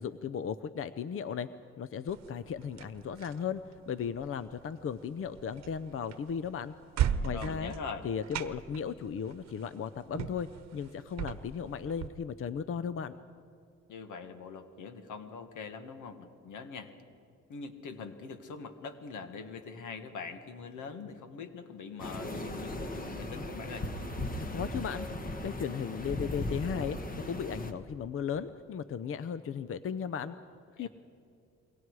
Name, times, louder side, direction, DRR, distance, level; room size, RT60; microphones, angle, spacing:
voice 1, 0.0-1.5 1.8-6.7 7.2-7.7 8.0-13.2 24.4-25.1 25.4-30.4 30.8-30.9, left 7 dB, 45° left, 13 dB, 0.7 m, -36 dB
sound 1, 2.1-12.1, right 9 dB, 60° right, 1.0 m, -39 dB
voice 2, 7.3-8.0 13.9-16.9 17.5-23.9 30.8-30.9, left 5 dB, 80° left, 8 dB, 1.8 m, -43 dB
sound 2, 22.0-27.7, left 1 dB, 30° left, 1.7 m, -37 dB
28.0 x 22.5 x 4.8 m, 2.5 s
cardioid pair, 90°, 30 cm